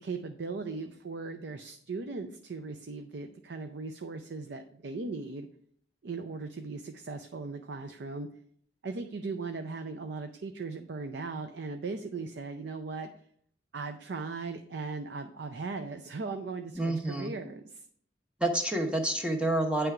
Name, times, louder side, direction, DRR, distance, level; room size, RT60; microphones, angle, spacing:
voice 1, 0.0-5.5 6.0-8.3 8.8-13.1 13.7-17.8, right 4 dB, 70° right, 7 dB, 0.5 m, -38 dB
voice 2, 16.8-17.3 18.4-19.9, right 1 dB, 5° right, 3 dB, 0.9 m, -28 dB
9.3 x 3.4 x 4.8 m, 0.62 s
head